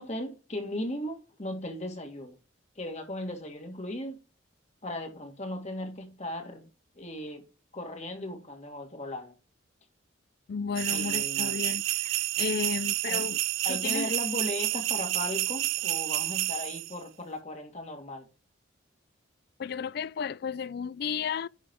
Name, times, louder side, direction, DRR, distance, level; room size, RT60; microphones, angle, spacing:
voice 1, 0.0-2.4 2.8-4.2 4.8-6.7 7.0-7.4 7.7-9.3 10.9-11.5 13.1-13.3 13.6-18.3, left 1 dB, 35° left, 2.0 m, -37 dB
voice 2, 10.5-13.4 13.7-14.1 19.6-21.5, left 6 dB, 55° left, 0.3 m, -33 dB
sound 1, 10.8-16.9, right 18 dB, 80° right, 0.3 m, -30 dB
10.5 x 4.1 x 4.5 m
head